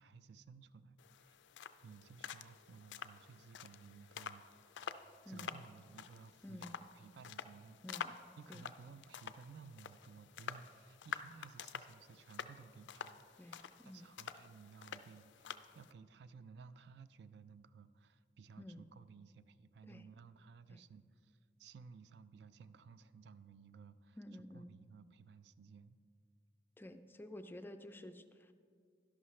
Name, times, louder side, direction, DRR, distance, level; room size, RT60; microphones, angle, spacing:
voice 1, 0.0-1.4 1.8-4.8 5.3-24.2 24.5-26.0, right 5 dB, 65° right, 14 dB, 0.3 m, -57 dB
sound 1, 1.0-15.9, left 7 dB, 85° left, 0.4 m, -49 dB
voice 2, 5.2-5.6 6.4-6.8 7.8-8.1 8.5-8.7 13.4-14.1 18.6-18.8 19.9-20.0 20.7-20.8 24.2-24.7 26.8-28.5, left 1 dB, 10° left, 9 dB, 0.4 m, -51 dB
12.0 x 11.0 x 3.2 m, 2.1 s
head